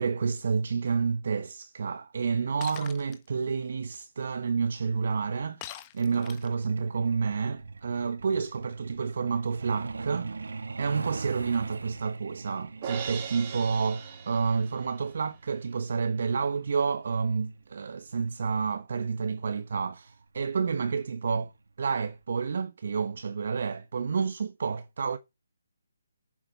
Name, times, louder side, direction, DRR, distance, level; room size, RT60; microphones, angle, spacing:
voice 1, 0.0-10.3 10.8-21.5 21.8-25.2, right 5 dB, 55° right, 1.1 m, -29 dB
Shatter, 2.6-3.2 5.6-6.6, left 13 dB, 20° left, 1.2 m, -42 dB
Truck, 6.4-18.7 19.9-20.1 20.5-20.7 21.1-21.3 21.7-21.8 22.2-22.3, right 4 dB, 75° right, 1.5 m, -41 dB
Crash cymbal, 12.8-15.1, right 7 dB, 30° right, 2.8 m, -39 dB
9.0 x 7.6 x 4.1 m
hypercardioid pair, 160°, 0 cm